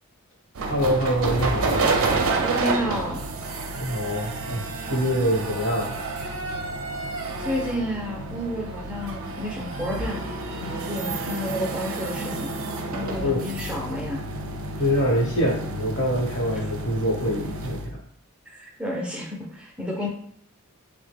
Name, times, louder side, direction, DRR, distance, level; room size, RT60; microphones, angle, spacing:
sound 1, 0.6-17.9, right 3 dB, 60° right, 0.5 m, -29 dB
voice 1, 0.7-1.9 3.8-6.0 13.2-13.4 14.8-18.0, equal, 55° left, -1 dB, 1.0 m, -25 dB
voice 2, 2.4-3.2 7.4-10.3 10.7-12.5 12.9-14.2 18.5-20.1, left 1 dB, 5° right, -3 dB, 0.5 m, -31 dB
3.6 x 2.1 x 3.3 m, 0.63 s
head